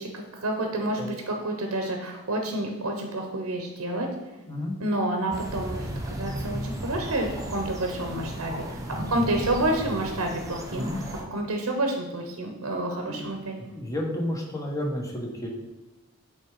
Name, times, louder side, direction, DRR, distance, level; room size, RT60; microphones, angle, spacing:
voice 1, 0.0-4.1 4.8-5.9 6.2-10.9 11.3-13.5, right 1 dB, 90° right, 3 dB, 0.9 m, -29 dB
voice 2, 4.5-4.8 8.3-9.4 9.8-9.9 10.7-11.0 13.1-13.3 13.6-15.5, left 1 dB, 15° left, -1 dB, 1.2 m, -32 dB
sound 1, 5.3-11.2, right 1 dB, 15° right, 0.9 m, -35 dB
8.1 x 3.5 x 4.8 m, 1.1 s
head